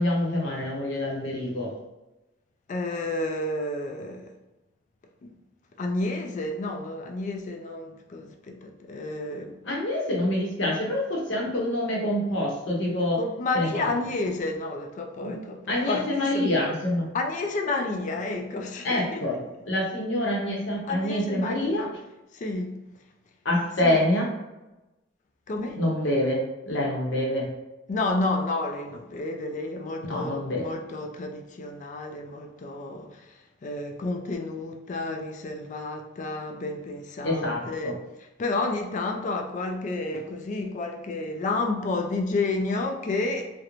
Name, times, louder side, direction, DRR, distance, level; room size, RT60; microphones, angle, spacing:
voice 1, 0.0-1.7 9.7-13.2 13.5-13.9 15.2-15.3 15.7-17.1 18.8-19.4 19.7-21.9 23.4-24.3 25.8-27.5 30.1-30.6 37.2-37.9, left 1 dB, 70° left, 0.7 m, -26 dB
voice 2, 2.7-4.3 5.2-5.3 5.8-9.6 13.2-16.5 17.1-19.4 20.9-21.9 22.3-22.8 23.8-24.1 25.5-25.8 27.9-43.6, left 2 dB, 40° left, 0.3 m, -31 dB
3.0 x 2.1 x 2.4 m
head